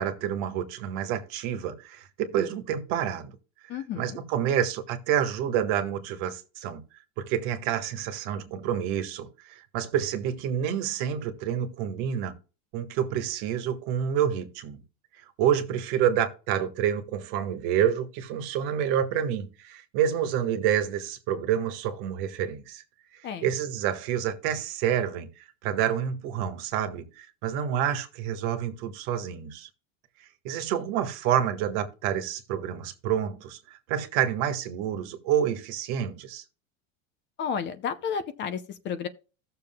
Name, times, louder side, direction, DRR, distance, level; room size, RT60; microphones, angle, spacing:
voice 1, 0.0-3.3 3.9-6.8 7.2-12.3 12.7-14.8 15.4-22.8 23.4-29.7 30.4-33.6 33.9-36.4, right 9 dB, 60° right, 1.5 m, -28 dB
voice 2, 3.7-4.2 23.2-23.5 37.4-39.1, left 7 dB, 30° left, 0.5 m, -32 dB
16.0 x 6.7 x 2.2 m
supercardioid pair, 155°, 38 cm